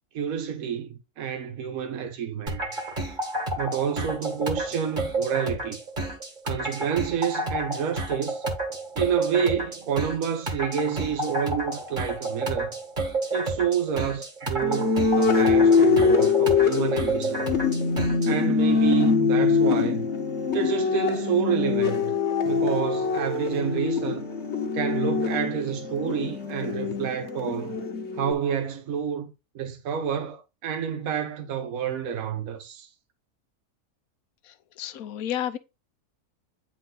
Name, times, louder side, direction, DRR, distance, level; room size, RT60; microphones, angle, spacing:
voice 1, 0.1-2.6 3.6-5.8 6.4-8.4 9.0-12.7 13.3-17.5 18.2-20.0 20.5-22.1 22.4-24.3 24.7-27.7 28.2-32.9, right 8 dB, 70° right, 1.4 m, -29 dB
sound 1, 2.5-18.3, right 2 dB, 35° right, 1.7 m, -30 dB
sound 2, 14.6-28.3, left 5 dB, 50° left, 1.4 m, -23 dB
voice 2, 34.8-35.6, left 11 dB, 75° left, 1.2 m, -30 dB
9.2 x 4.6 x 3.9 m
omnidirectional pair, 1.6 m